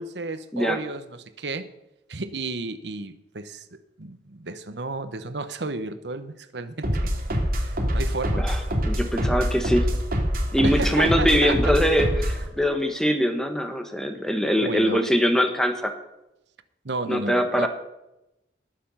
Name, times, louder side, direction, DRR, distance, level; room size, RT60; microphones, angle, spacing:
voice 1, 0.0-1.7 2.1-3.6 4.0-7.1 7.6-8.5 10.6-11.7 14.6-15.0 16.8-17.7, right 3 dB, 80° right, 11 dB, 1.0 m, -32 dB
sound 1, 6.8-12.5, equal, 55° right, 2.7 m, -25 dB
voice 2, 8.4-9.9 10.5-15.9 17.1-17.7, equal, 5° left, 5 dB, 1.3 m, -23 dB
19.5 x 6.9 x 5.7 m, 0.91 s
head